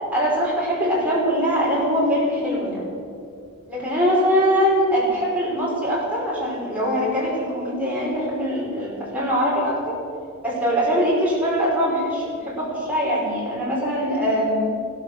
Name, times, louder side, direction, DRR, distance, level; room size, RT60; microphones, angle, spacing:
voice 1, 0.1-3.0 3.7-10.0 10.4-14.7, equal, 5° right, -6 dB, 5.2 m, -22 dB
15.5 x 12.5 x 6.9 m, 2.4 s
head